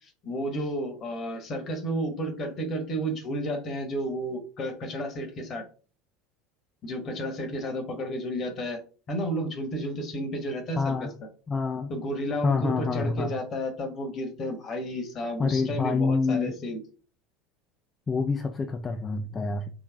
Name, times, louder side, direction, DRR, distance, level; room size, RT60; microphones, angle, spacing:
voice 1, 0.0-5.6 6.8-8.8 9.1-11.1 11.9-16.8, equal, 40° left, 5 dB, 1.3 m, -32 dB
voice 2, 10.8-11.1 11.5-11.9 12.4-13.4 15.4-16.5 18.1-19.7, left 4 dB, 25° left, 5 dB, 0.5 m, -27 dB
3.9 x 3.1 x 3.5 m, 0.38 s
figure-of-eight pair, 70°, 0 cm